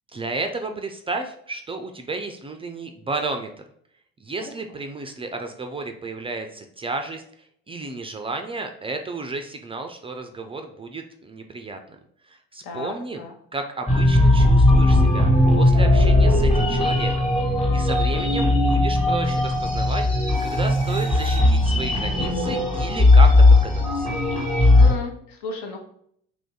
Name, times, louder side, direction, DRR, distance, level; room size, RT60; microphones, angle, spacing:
voice 1, 0.1-3.6 4.2-7.2 7.7-12.0 12.2-13.2 13.5-17.3 17.7-24.1, right 3 dB, 20° right, 5 dB, 0.4 m, -32 dB
voice 2, 12.6-13.3 24.8-25.8, left 3 dB, 70° left, 3 dB, 0.9 m, -34 dB
sound 1, 13.9-24.9, left 2 dB, 20° left, 1.4 m, -17 dB
3.0 x 2.6 x 3.6 m, 0.68 s
hypercardioid pair, 75°, 31 cm